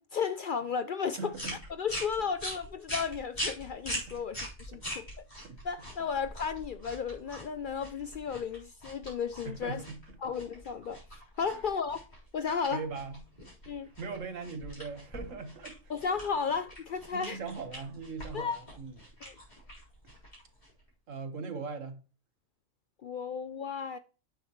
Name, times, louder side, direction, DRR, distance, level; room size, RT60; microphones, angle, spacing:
voice 1, 0.0-1.3 1.7-5.1 5.6-9.8 10.2-11.0 11.4-12.0 12.3-12.8 13.7-13.9 15.9-17.4 18.3-18.6 19.2-19.4 23.0-24.0, left 6 dB, 60° left, 0.5 m, -34 dB
voice 2, 1.2-1.6 4.1-4.2 4.9-5.0 5.4-5.6 9.4-10.0 12.7-13.2 13.6-15.8 17.1-18.9 21.1-22.0, right 4 dB, 90° right, 1.7 m, -40 dB
sound 1, 1.3-20.9, equal, 35° left, 4.2 m, -43 dB
10.0 x 8.8 x 3.1 m
omnidirectional pair, 1.3 m